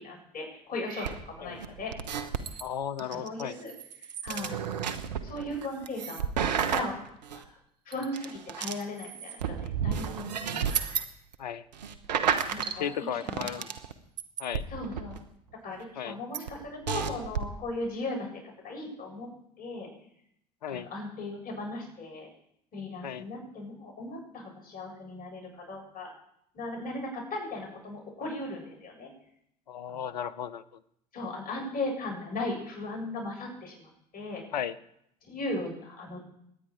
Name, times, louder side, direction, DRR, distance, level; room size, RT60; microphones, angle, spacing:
voice 1, 0.0-1.9 3.1-3.7 4.0-4.6 5.2-6.2 6.7-7.0 7.5-7.6 7.9-10.7 12.5-12.9 13.2-13.5 14.7-15.1 15.6-19.3 19.6-19.9 20.7-22.3 22.7-26.1 26.5-29.1 29.9-30.2 31.1-34.4 35.3-36.2, left 2 dB, 45° left, 0 dB, 7.7 m, -37 dB
sound 1, 0.9-2.6 3.0-7.4 7.9-11.1 11.3-11.4 11.7-12.8 13.1-13.9 14.2-15.2 16.3-16.5 16.9-17.4, right 7 dB, 85° right, 1.0 m, -32 dB
voice 2, 2.6-3.5 11.4-11.7 12.8-13.7 14.4-14.6 16.0-16.2 20.6-20.9 23.0-23.3 29.7-30.6 34.5-34.8, left 8 dB, 85° left, 18 dB, 0.6 m, -35 dB
23.0 x 9.9 x 4.9 m, 0.74 s
hypercardioid pair, 70°, 21 cm